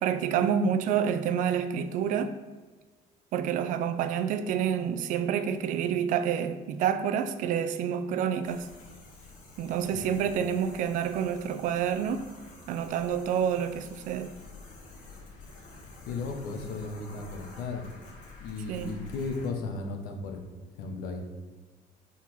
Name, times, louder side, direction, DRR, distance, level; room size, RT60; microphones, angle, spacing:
voice 1, 0.0-2.3 3.3-8.7 9.6-12.3 12.7-14.3 18.7-18.9, right 8 dB, 55° right, 10 dB, 0.4 m, -28 dB
sound 1, 8.4-19.5, left 3 dB, 55° left, 1.5 m, -49 dB
voice 2, 16.0-17.9 18.4-20.4 20.7-21.2, left 3 dB, 75° left, 4 dB, 1.0 m, -35 dB
4.8 x 4.2 x 5.6 m, 1.3 s
cardioid pair, 175°, 16 cm